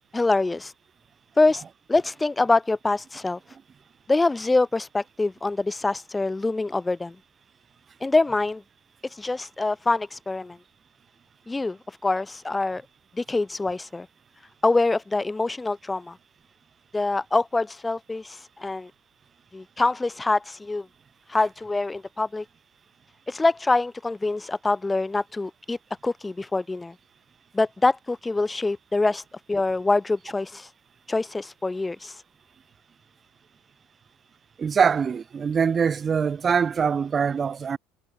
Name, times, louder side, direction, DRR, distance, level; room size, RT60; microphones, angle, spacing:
voice 1, 0.1-0.7 1.4-1.6 1.9-3.4 4.1-7.1 8.0-8.6 9.0-10.6 11.5-12.8 13.2-14.1 14.6-16.2 16.9-18.9 19.5-20.9 21.3-22.4 23.3-25.8 26.0-26.9 27.5-30.7 31.1-32.2, left 3 dB, 10° left, 1.4 m, -25 dB
voice 2, 34.6-37.8, right 6 dB, 25° right, 4.9 m, -23 dB
cardioid pair, 125°, 0 cm